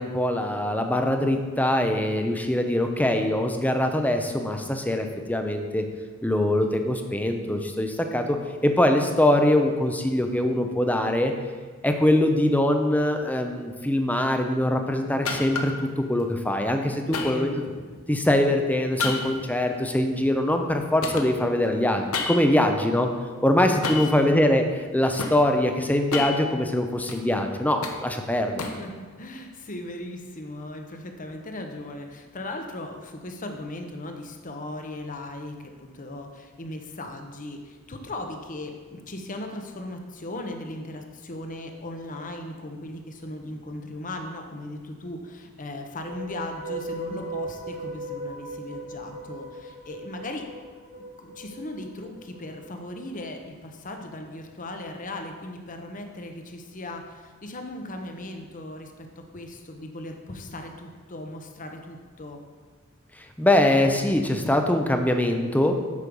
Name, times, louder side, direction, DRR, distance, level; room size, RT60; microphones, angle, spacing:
voice 1, 0.0-5.8 6.2-8.4 8.6-11.3 11.8-17.5 18.1-23.1 23.4-28.6 63.4-65.7, left 1 dB, 5° left, 5 dB, 0.7 m, -23 dB
sound 1, 15.2-15.9 17.1-18.1 19.0-20.7 21.0-22.7 23.8-24.2 24.8-25.4 25.9-27.2 27.6-28.9, left 4 dB, 75° left, 1.0 m, -32 dB
voice 2, 17.0-17.6 24.0-24.3 28.7-50.5 50.9-62.4, left 1 dB, 40° left, 4 dB, 1.0 m, -38 dB
sound 2, 45.9-53.2, right 1 dB, 55° right, 2.2 m, -38 dB
8.4 x 6.5 x 5.3 m, 1.5 s
head